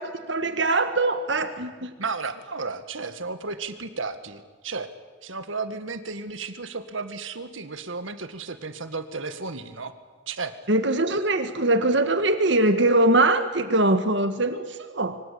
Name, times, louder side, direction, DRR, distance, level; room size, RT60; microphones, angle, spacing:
voice 1, 0.0-1.9 10.7-15.2, right 2 dB, 65° right, 9 dB, 1.6 m, -22 dB
voice 2, 2.0-4.9 5.2-9.9 10.3-10.5, right 4 dB, 85° right, 10 dB, 2.0 m, -33 dB
26.0 x 24.5 x 8.7 m, 1.4 s
head